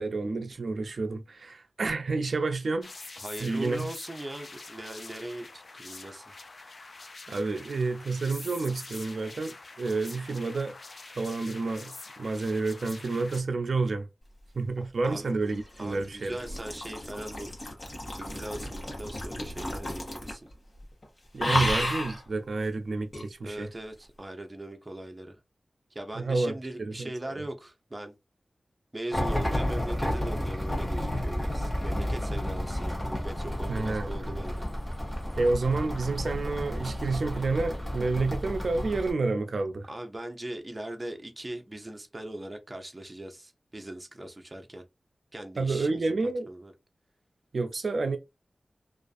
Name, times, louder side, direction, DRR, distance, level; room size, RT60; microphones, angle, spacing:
voice 1, 0.0-2.9 3.4-3.9 7.3-10.7 11.2-11.9 12.2-14.1 14.5-16.4 21.3-23.7 26.1-26.5 26.8-27.1 33.7-34.3 35.4-39.9 45.6-46.5 47.5-48.2, right 3 dB, 75° right, 0.3 m, -29 dB
sound 1, 2.8-13.4, left 3 dB, 60° left, 0.4 m, -45 dB
voice 2, 3.2-6.4 15.0-15.3 15.8-17.5 18.1-20.5 23.4-25.4 25.9-28.1 28.9-34.6 39.9-44.8 45.3-46.7, right 1 dB, 25° right, 0.5 m, -40 dB
sound 2, 14.8-20.5 20.8-21.0 21.4-22.2 23.1-23.3, left 1 dB, 45° left, 1.0 m, -33 dB
sound 3, 29.1-39.1, left 1 dB, 20° left, 1.0 m, -31 dB
2.4 x 2.3 x 2.4 m
wide cardioid pair, 95°, 0 cm